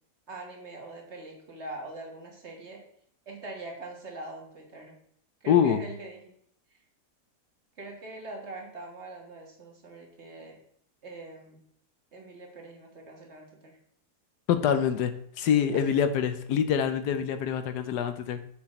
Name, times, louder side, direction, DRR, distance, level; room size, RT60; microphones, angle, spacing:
voice 1, 0.3-2.8 3.2-5.0 5.4-6.3 7.8-10.6 11.0-11.6 12.1-13.8 15.7-15.9, right 2 dB, 45° right, 1 dB, 1.7 m, -43 dB
voice 2, 5.5-5.8 14.5-15.1 15.4-18.4, left 8 dB, 90° left, 10 dB, 1.3 m, -25 dB
7.0 x 5.0 x 4.2 m, 0.67 s
omnidirectional pair, 1.7 m